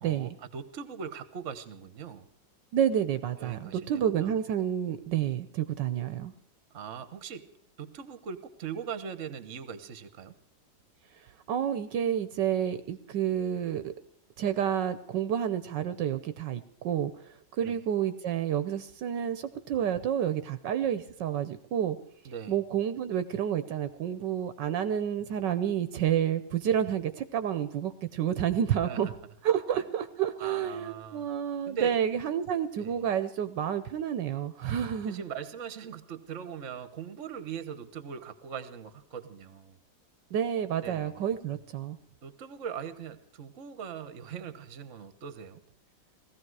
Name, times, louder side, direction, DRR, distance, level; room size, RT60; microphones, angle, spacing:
voice 1, 0.0-2.3 3.4-4.3 6.7-7.5 7.8-10.3 17.6-17.8 22.2-22.6 28.8-29.1 30.4-31.3 31.7-32.0 32.8-32.9 35.1-39.8 40.8-41.2 42.2-45.6, right 7 dB, 45° right, 12 dB, 1.3 m, -40 dB
voice 2, 2.7-6.3 11.5-13.9 14.4-22.0 22.5-29.1 29.4-35.2 40.3-42.0, right 9 dB, 75° right, 12 dB, 1.4 m, -29 dB
17.5 x 14.5 x 4.8 m, 0.64 s
omnidirectional pair, 2.0 m